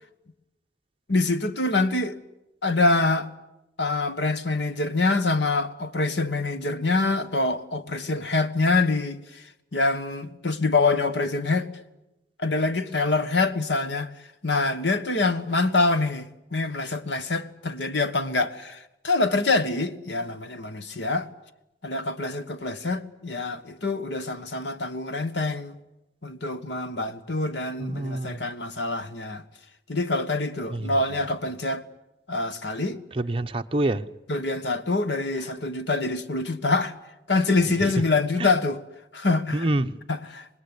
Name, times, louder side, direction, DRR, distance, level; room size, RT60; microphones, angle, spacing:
voice 1, 1.1-2.2 2.6-3.3 3.8-9.5 9.7-11.7 12.4-14.1 14.4-21.3 21.8-25.8 26.2-29.4 29.9-31.8 32.3-33.0 34.3-36.9 37.3-38.8 39.1-39.7 40.1-40.5, left 3 dB, 75° left, 1.4 m, -25 dB
voice 2, 27.8-28.4 30.7-31.0 33.1-34.0 37.8-37.9 38.4-38.5 39.5-40.0, right 1 dB, 30° right, 0.9 m, -27 dB
25.5 x 20.0 x 9.8 m
head